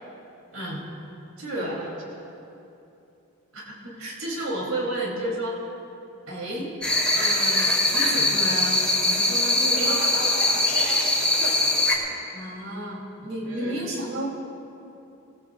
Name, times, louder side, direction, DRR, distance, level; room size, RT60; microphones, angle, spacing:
voice 1, 0.5-0.8 1.4-1.8 3.5-5.6 6.3-6.7 7.1-10.0 12.3-14.3, right 1 dB, 75° right, -3 dB, 3.7 m, -32 dB
sound 1, 6.8-11.9, left 1 dB, 5° left, 3.0 m, -22 dB
voice 2, 9.7-12.2 13.4-13.8, right 2 dB, 55° right, -5 dB, 3.2 m, -36 dB
28.5 x 19.0 x 2.6 m, 2.8 s
head